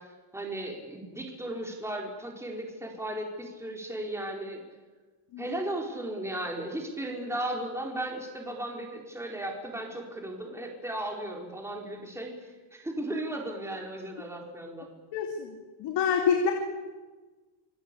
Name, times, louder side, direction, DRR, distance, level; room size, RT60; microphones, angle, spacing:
voice 1, 0.0-4.6 5.4-14.9, right 1 dB, 5° right, 0 dB, 4.3 m, -36 dB
voice 2, 15.1-16.5, left 6 dB, 75° left, 3 dB, 3.0 m, -27 dB
27.5 x 18.5 x 8.5 m, 1.3 s
cardioid pair, 140°, 42 cm